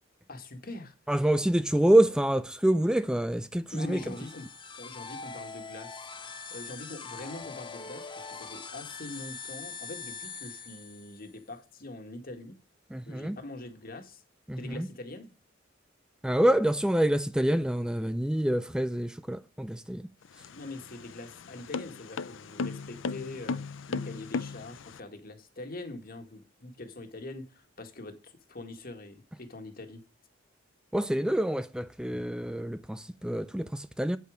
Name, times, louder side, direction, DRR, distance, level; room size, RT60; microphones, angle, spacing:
voice 1, 0.3-1.0 3.7-4.5 4.8-6.1 6.5-12.5 13.1-14.2 14.6-15.3 20.5-23.6 23.9-30.0, left 2 dB, 50° left, 1.8 m, -43 dB
voice 2, 1.1-4.0 12.9-13.4 14.5-14.9 16.2-20.0 30.9-34.2, right 1 dB, 5° right, 0.4 m, -26 dB
sound 1, 3.7-11.4, left 5 dB, 25° left, 1.0 m, -43 dB
sound 2, 20.2-25.0, left 4 dB, 85° left, 0.6 m, -36 dB
8.9 x 8.4 x 5.0 m
head